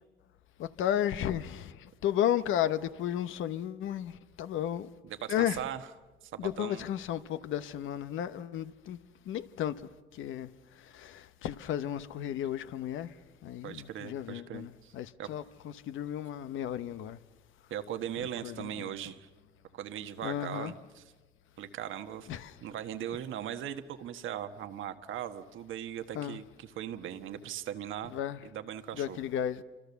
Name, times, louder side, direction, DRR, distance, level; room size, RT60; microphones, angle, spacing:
voice 1, 0.6-4.1 4.4-4.9 5.3-5.6 6.4-9.0 9.3-9.7 10.2-10.5 10.9-13.1 13.4-17.2 18.2-18.9 20.2-20.7 22.3-22.5 26.1-26.4 28.1-28.4 28.9-29.6, left 11 dB, 80° left, 1.0 m, -33 dB
voice 2, 5.0-5.9 6.3-6.8 13.6-14.9 15.2-15.3 17.7-19.3 19.7-21.0 21.6-22.3 22.6-28.1 28.4-29.2, right 10 dB, 80° right, 1.4 m, -39 dB
27.5 x 25.5 x 7.0 m
cardioid pair, 90°, 20 cm